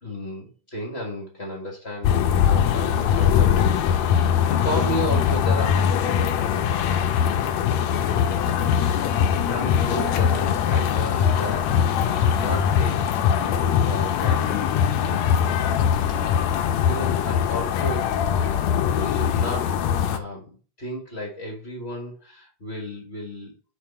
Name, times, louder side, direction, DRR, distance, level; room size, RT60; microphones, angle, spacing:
voice 1, 0.0-7.2 9.4-18.1 18.9-23.6, equal, 35° left, -1 dB, 1.0 m, -34 dB
sound 1, 2.0-20.2, left 8 dB, 85° left, 1.6 m, -21 dB
6.6 x 4.5 x 4.4 m, 0.38 s
omnidirectional pair, 4.0 m